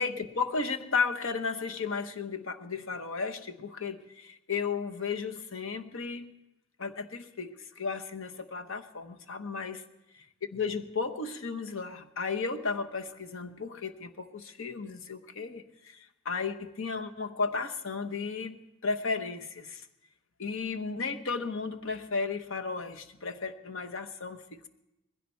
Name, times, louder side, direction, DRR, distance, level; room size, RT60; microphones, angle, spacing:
voice 1, 0.0-6.3 6.8-9.8 10.5-19.9 20.4-24.7, left 4 dB, 65° left, 7 dB, 0.9 m, -34 dB
20.0 x 16.0 x 4.5 m, 0.94 s
head